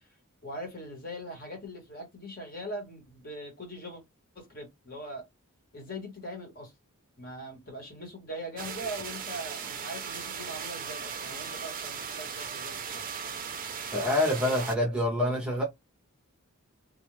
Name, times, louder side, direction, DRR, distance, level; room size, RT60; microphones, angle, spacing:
voice 1, 0.4-4.0 4.3-5.3 5.7-6.7 7.2-13.0, equal, 40° left, 1.2 m, -41 dB
sound 1, 8.6-14.8, right 6 dB, 40° right, 0.5 m, -37 dB
voice 2, 13.9-15.6, left 1 dB, 5° right, 0.7 m, -26 dB
2.4 x 2.3 x 3.0 m
head